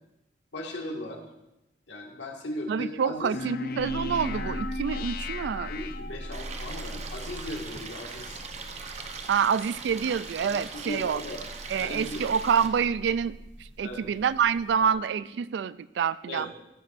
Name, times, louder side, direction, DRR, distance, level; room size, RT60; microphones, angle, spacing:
voice 1, 0.5-1.2 1.9-3.4 5.7-8.5 10.4-11.4 11.8-12.2 13.8-14.1 14.8-14.9 16.3-16.5, left 1 dB, 75° left, 0 dB, 1.9 m, -37 dB
voice 2, 2.7-5.7 9.3-11.2 11.7-13.4 13.8-16.5, right 7 dB, 65° right, 17 dB, 0.3 m, -27 dB
sound 1, 3.3-6.6, left 3 dB, 50° left, 0.5 m, -36 dB
sound 2, 3.8-14.9, equal, 85° right, 1.6 m, -42 dB
Stream, 6.3-12.7, right 4 dB, 35° right, 0.8 m, -40 dB
16.0 x 9.0 x 2.6 m, 0.90 s
head